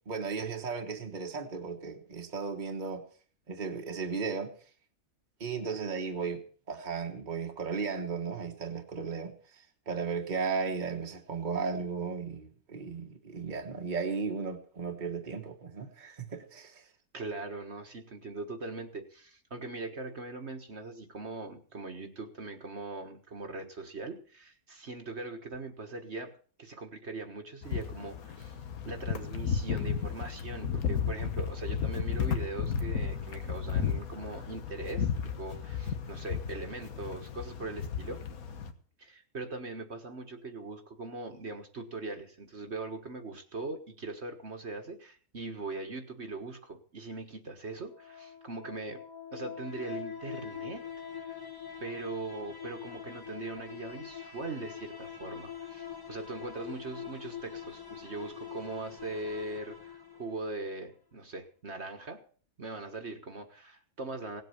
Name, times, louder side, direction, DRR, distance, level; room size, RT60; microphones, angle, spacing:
voice 1, 0.1-3.0 3.5-4.5 5.4-16.8, right 5 dB, 35° right, 1.5 m, -35 dB
voice 2, 17.1-26.3 26.6-28.6 28.9-35.1 35.4-38.2 39.0-49.0 49.3-50.8 51.2-51.4 51.8-62.2 62.6-64.4, right 3 dB, 50° right, 1.7 m, -40 dB
sound 1, 27.6-38.7, left 7 dB, 80° left, 1.7 m, -34 dB
sound 2, 47.7-60.7, left 8 dB, 15° left, 1.7 m, -44 dB
18.0 x 8.0 x 7.1 m
omnidirectional pair, 1.5 m